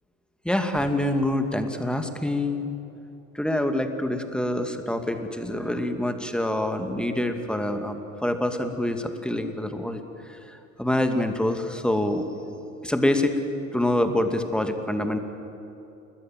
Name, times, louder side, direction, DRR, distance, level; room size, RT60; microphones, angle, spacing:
voice 1, 0.4-2.7 3.3-10.0 10.5-12.5 12.8-13.4 13.7-15.2, left 1 dB, ahead, 6 dB, 2.5 m, -26 dB
30.0 x 20.5 x 7.6 m, 2.8 s
figure-of-eight pair, 65°, 39 cm